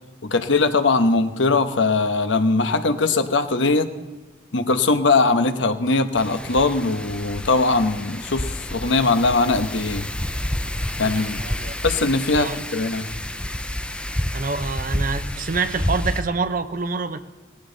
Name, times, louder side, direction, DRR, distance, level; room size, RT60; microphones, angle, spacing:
voice 1, 0.2-3.9 4.5-10.1 11.0-11.4 11.8-13.1, left 3 dB, 75° left, 9 dB, 1.0 m, -20 dB
Wind, 6.2-16.2, left 1 dB, 5° left, 0.5 m, -29 dB
voice 2, 11.0-11.7 12.3-12.6 14.3-17.2, right 4 dB, 45° right, 10 dB, 0.7 m, -27 dB
18.5 x 15.5 x 4.0 m, 1.2 s
head